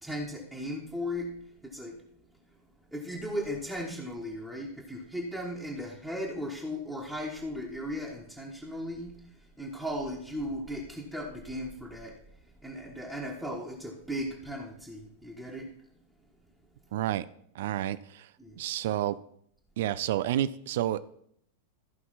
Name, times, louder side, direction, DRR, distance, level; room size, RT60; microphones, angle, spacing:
voice 1, 0.0-2.0 2.9-12.1 12.4-15.7 18.4-18.6, equal, ahead, -4 dB, 1.6 m, -37 dB
voice 2, 16.9-17.3 17.5-18.3 18.6-19.2 19.8-21.0, right 12 dB, 55° right, 16 dB, 0.4 m, -30 dB
14.0 x 5.4 x 4.2 m, 0.67 s
figure-of-eight pair, 90°, 0 cm